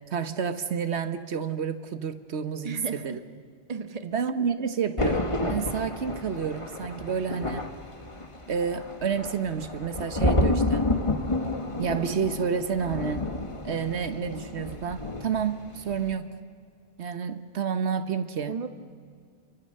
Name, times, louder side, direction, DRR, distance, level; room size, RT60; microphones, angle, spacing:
voice 1, 0.0-3.2 4.0-7.7 8.5-10.9 11.8-13.3 13.6-16.4 17.0-18.6, right 6 dB, 85° right, 10 dB, 1.3 m, -30 dB
voice 2, 2.6-3.2 3.7-4.1 18.5-18.7, right 5 dB, 35° right, 9 dB, 1.1 m, -34 dB
Thunder, 5.0-15.6 15.9-16.2, left 2 dB, 30° left, 1.6 m, -30 dB
28.5 x 24.0 x 6.6 m, 2.2 s
omnidirectional pair, 1.1 m